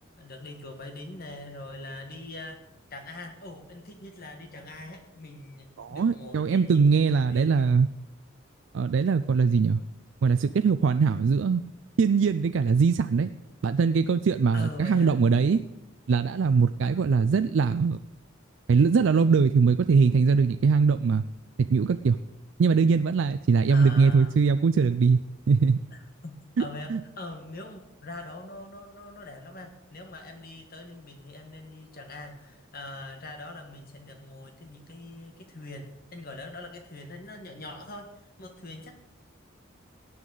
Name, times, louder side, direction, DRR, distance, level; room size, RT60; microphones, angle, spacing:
voice 1, 0.2-2.6 2.9-7.6 14.5-15.1 16.9-17.2 23.7-24.3 25.9-38.1 38.4-38.9, left 2 dB, 50° left, 5 dB, 1.4 m, -42 dB
voice 2, 5.8-7.9 8.7-9.8 10.2-11.6 12.0-13.3 13.6-15.6 16.1-18.0 18.7-21.2 21.7-22.2 22.6-25.2 25.5-25.8 26.6-26.7 26.9-27.0, right 5 dB, 70° right, 9 dB, 0.4 m, -21 dB
17.5 x 9.4 x 3.9 m, 0.87 s
head